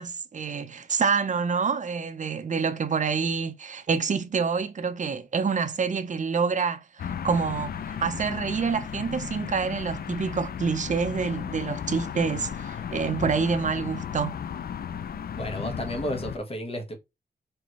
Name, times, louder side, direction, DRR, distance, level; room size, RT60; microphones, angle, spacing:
voice 1, 0.0-14.3, right 5 dB, 45° right, 0.7 m, -27 dB
sound 1, 7.0-16.4, left 8 dB, 60° left, 0.4 m, -35 dB
voice 2, 15.3-17.0, equal, 35° left, 1.4 m, -32 dB
4.6 x 3.5 x 3.1 m
wide cardioid pair, 105°, 18 cm